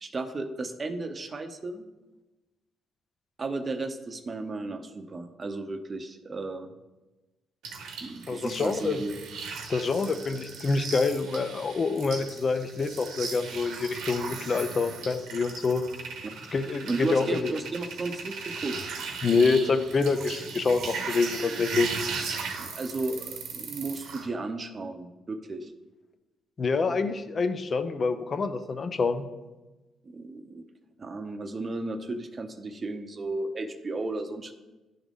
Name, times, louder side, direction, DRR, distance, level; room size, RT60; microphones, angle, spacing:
voice 1, 0.0-1.9 3.4-6.7 8.0-9.1 16.9-18.8 22.6-25.7 30.1-30.6 31.0-34.5, right 2 dB, 35° right, 7 dB, 0.7 m, -34 dB
sound 1, 7.6-24.3, right 5 dB, 80° right, 1.1 m, -37 dB
voice 2, 8.3-9.0 9.7-15.8 16.5-17.5 19.2-22.0 26.6-29.3, left 4 dB, 40° left, 10 dB, 0.6 m, -26 dB
11.0 x 3.7 x 3.6 m, 1.1 s
cardioid pair, 90°, 0 cm